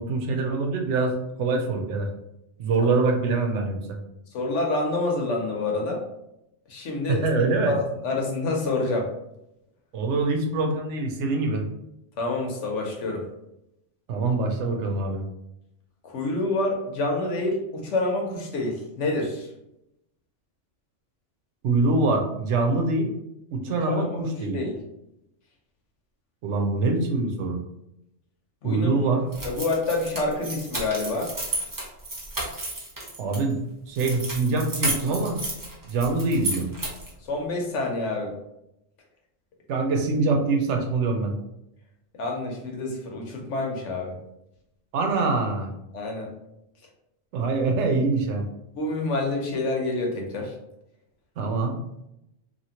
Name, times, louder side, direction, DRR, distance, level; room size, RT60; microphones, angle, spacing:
voice 1, 0.0-2.1 2.6-4.0 7.1-7.8 9.9-11.6 14.1-15.2 21.6-23.1 23.5-24.6 26.4-27.6 28.6-29.2 33.2-33.6 33.9-35.4 35.8-36.7 39.7-41.4 44.9-45.7 47.3-48.4 51.4-51.8, right 3 dB, 75° right, 3 dB, 0.9 m, -24 dB
voice 2, 4.3-6.0 6.7-7.3 7.7-9.1 12.2-13.2 16.0-19.5 23.7-24.8 28.6-29.1 29.4-31.3 37.2-38.3 42.1-44.2 45.9-46.3 48.8-50.5, left 2 dB, 75° left, 1 dB, 1.0 m, -27 dB
sound 1, 29.3-33.4 33.9-37.2, right 2 dB, 20° right, 0.6 m, -32 dB
2.9 x 2.5 x 2.8 m, 0.84 s
omnidirectional pair, 1.3 m